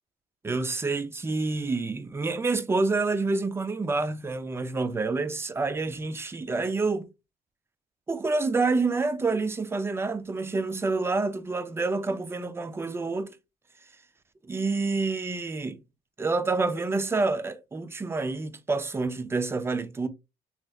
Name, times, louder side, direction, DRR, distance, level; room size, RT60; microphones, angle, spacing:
voice 1, 0.4-7.1 8.1-13.3 14.5-15.8 16.2-20.1, right 3 dB, 15° right, 0.4 m, -28 dB
3.0 x 2.9 x 2.3 m
cardioid pair, 110°, 17 cm